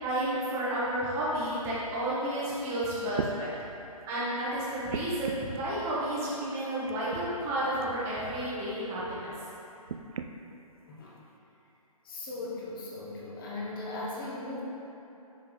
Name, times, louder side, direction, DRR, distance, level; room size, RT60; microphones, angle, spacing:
voice 1, 0.0-3.5 4.1-9.3, right 1 dB, 15° right, -9 dB, 0.9 m, -31 dB
sound 1, 3.1-3.4 4.9-5.6 6.8-7.2 7.8-8.0 9.8-10.3 11.2-11.3, right 6 dB, 65° right, 0.4 m, -36 dB
voice 2, 10.9-11.2 12.0-14.6, left 2 dB, 35° left, -5 dB, 1.2 m, -38 dB
6.7 x 4.6 x 3.9 m, 2.9 s
hypercardioid pair, 155°, 19 cm